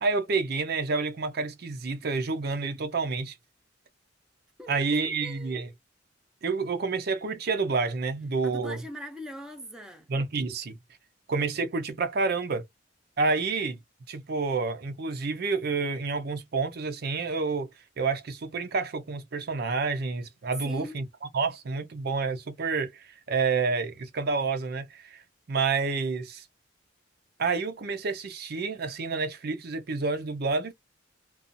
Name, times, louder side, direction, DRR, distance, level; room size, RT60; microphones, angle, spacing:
voice 1, 0.0-3.4 4.7-5.7 6.4-8.8 10.1-10.8 11.3-12.6 13.2-13.8 14.1-17.7 18.0-21.0 21.3-25.2 25.5-26.5 27.4-30.7, right 4 dB, 55° right, 0.5 m, -29 dB
voice 2, 4.6-5.7 8.4-10.1 20.6-21.0, equal, 5° right, 0.6 m, -42 dB
2.5 x 2.3 x 2.5 m
head